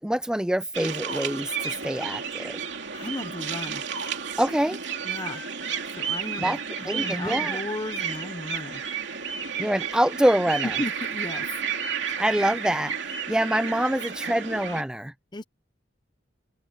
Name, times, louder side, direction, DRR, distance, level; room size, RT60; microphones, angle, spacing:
voice 1, 0.0-2.6 4.4-4.8 6.4-6.6 6.8-7.6 9.6-10.7 12.2-15.1, right 1 dB, 5° right, 0.4 m, -25 dB
sound 1, 0.7-14.8, right 6 dB, 65° right, 3.1 m, -32 dB
voice 2, 2.9-3.8 5.0-5.4 5.9-8.8 10.6-11.5 15.3-15.4, left 1 dB, 25° left, 1.2 m, -35 dB
open air
head